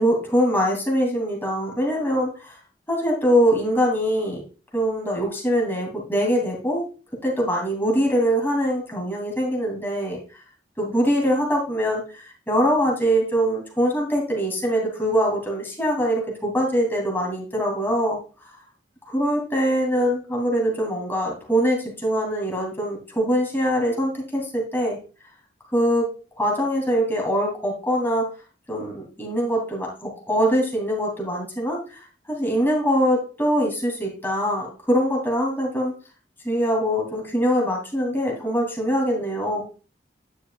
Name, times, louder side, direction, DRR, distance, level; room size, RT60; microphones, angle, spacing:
voice 1, 0.0-2.5 2.9-4.4 4.7-6.8 7.2-10.2 10.8-18.2 19.1-25.0 25.7-26.1 26.4-28.3 28.7-32.0 32.3-35.9 36.4-39.7, equal, 10° left, -2 dB, 2.8 m, -23 dB
9.8 x 6.5 x 2.4 m, 0.36 s
head